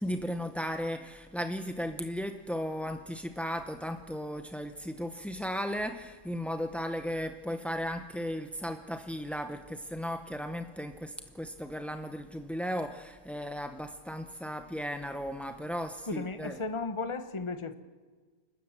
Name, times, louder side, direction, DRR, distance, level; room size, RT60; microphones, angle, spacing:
voice 1, 0.0-16.6, equal, ahead, 7 dB, 0.5 m, -36 dB
voice 2, 16.0-17.7, left 3 dB, 25° left, 10 dB, 1.2 m, -35 dB
29.0 x 13.0 x 7.4 m, 1.4 s
omnidirectional pair, 1.4 m